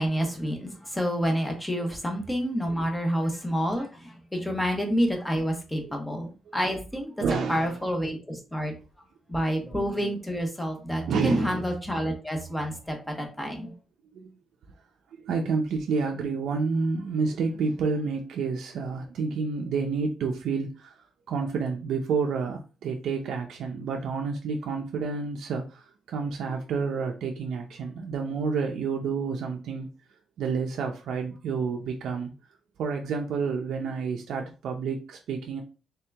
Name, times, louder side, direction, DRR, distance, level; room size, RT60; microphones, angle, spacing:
voice 1, 0.0-8.7 9.3-13.7, equal, 5° left, 3 dB, 1.0 m, -29 dB
voice 2, 5.8-6.2 6.5-6.6 7.2-7.8 9.3-9.4 11.1-11.6 13.5-13.6 14.1-14.3 15.1-20.9 21.3-29.9 30.4-32.3 32.8-35.6, right 5 dB, 80° right, 2 dB, 0.5 m, -29 dB
3.4 x 2.8 x 3.3 m, 0.32 s
cardioid pair, 120°, 0 cm